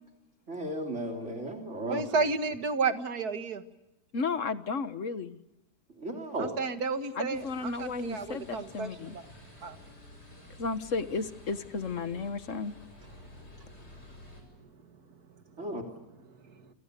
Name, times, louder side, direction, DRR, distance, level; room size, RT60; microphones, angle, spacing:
voice 1, 0.5-2.3 6.0-6.6 15.6-15.8, right 1 dB, 40° right, 3.7 m, -35 dB
voice 2, 1.9-3.6 6.4-9.2 9.6-9.8, right 4 dB, 65° right, 2.3 m, -31 dB
voice 3, 4.1-5.4 7.1-9.2 10.6-12.7, left 4 dB, 50° left, 1.5 m, -33 dB
sound 1, 7.3-14.4, left 1 dB, 75° left, 7.7 m, -51 dB
29.0 x 28.0 x 6.8 m
omnidirectional pair, 1.8 m